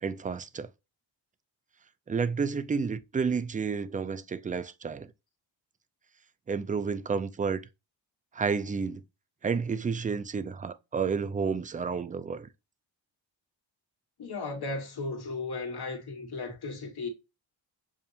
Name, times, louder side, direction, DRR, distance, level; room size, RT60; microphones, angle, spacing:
voice 1, 0.0-0.7 2.1-5.1 6.5-7.6 8.3-9.0 9.4-12.5, right 5 dB, 20° right, 0.4 m, -30 dB
voice 2, 14.2-17.1, left 3 dB, 55° left, 1.7 m, -35 dB
7.1 x 2.5 x 2.7 m
cardioid pair, 95°, 45 cm